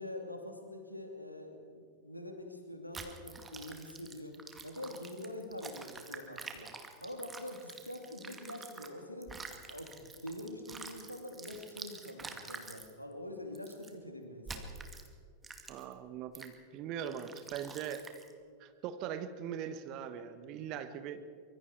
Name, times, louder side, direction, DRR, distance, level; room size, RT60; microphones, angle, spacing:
voice 1, 0.0-4.3 4.6-9.4 9.7-14.7, left 1 dB, 90° left, 4 dB, 2.6 m, -45 dB
sound 1, 2.9-8.9 9.2-12.9 13.5-13.9 14.4-15.1 15.4-15.9 16.3-16.5 17.1-18.3, right 4 dB, 15° right, 2.2 m, -48 dB
voice 2, 15.7-18.1 18.6-21.3, right 9 dB, 40° right, 11 dB, 1.3 m, -41 dB
24.5 x 23.0 x 4.7 m, 2.1 s
figure-of-eight pair, 90°, 0 cm